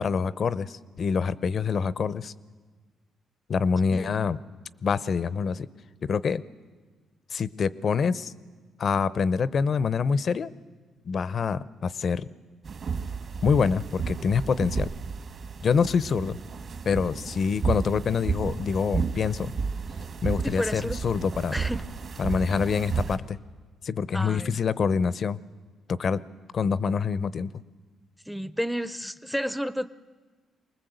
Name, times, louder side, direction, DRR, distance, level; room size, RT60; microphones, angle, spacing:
voice 1, 0.0-2.3 3.5-4.4 4.8-5.7 6.0-6.4 7.3-8.3 8.8-10.5 11.1-12.3 13.4-14.9 15.6-16.4 16.9-19.5 20.2-21.6 22.2-23.4 23.8-25.4 25.9-26.2 26.5-27.5, left 6 dB, 50° left, 18 dB, 0.7 m, -26 dB
voice 2, 3.9-4.3 20.4-21.1 21.5-21.9 22.3-22.6 24.1-24.6 28.3-29.9, equal, ahead, 16 dB, 0.7 m, -32 dB
sound 1, 12.6-23.2, right 5 dB, 50° right, 1.8 m, -32 dB
24.0 x 20.0 x 8.0 m, 1.4 s
cardioid pair, 90°, 0 cm